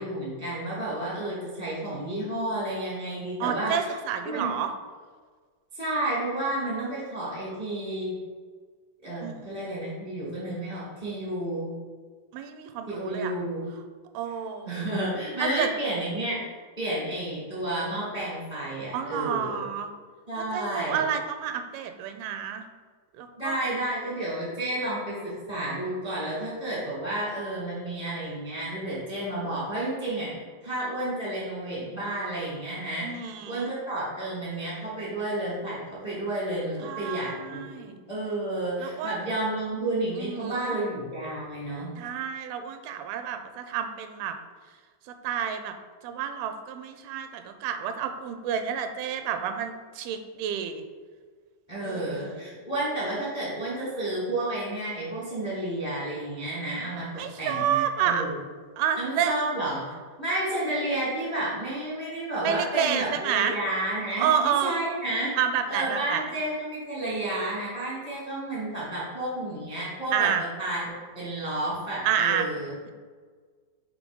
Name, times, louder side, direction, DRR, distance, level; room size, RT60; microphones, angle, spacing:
voice 1, 0.0-3.9 4.2-4.5 5.7-8.2 9.0-11.7 12.9-13.7 14.6-16.4 16.8-19.6 20.3-21.0 23.4-33.1 33.4-37.6 38.1-41.9 51.7-57.1 57.4-58.4 59.0-59.9 60.2-65.3 65.7-70.3 70.6-72.7, right 1 dB, 40° left, -7 dB, 0.5 m, -31 dB
voice 2, 3.4-4.7 9.2-9.5 12.3-13.3 14.1-14.9 15.4-15.7 18.9-19.9 20.4-22.7 23.2-23.6 33.0-33.7 36.8-38.0 38.8-39.1 40.2-40.8 42.0-44.4 45.1-45.7 46.0-50.8 51.8-52.4 57.2-58.3 58.8-59.3 62.4-63.6 64.2-64.8 65.4-66.2 70.1-70.4 72.0-72.5, right 8 dB, 85° right, 7 dB, 2.4 m, -29 dB
6.3 x 3.3 x 5.3 m, 1.5 s
omnidirectional pair, 4.3 m